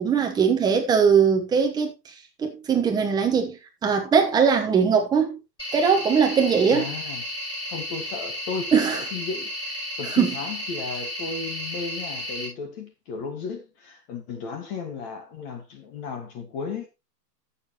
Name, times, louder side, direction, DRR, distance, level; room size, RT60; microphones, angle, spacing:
voice 1, 0.0-1.9 2.4-5.4 5.7-6.9 8.7-9.0 10.1-10.3, right 6 dB, 10° right, 1.1 m, -20 dB
sound 1, 5.6-12.5, left 1 dB, 10° left, 7.1 m, -33 dB
voice 2, 6.7-7.2 7.7-9.5 10.0-16.9, left 5 dB, 25° left, 1.7 m, -34 dB
14.5 x 7.1 x 3.0 m
hypercardioid pair, 145°, 50 cm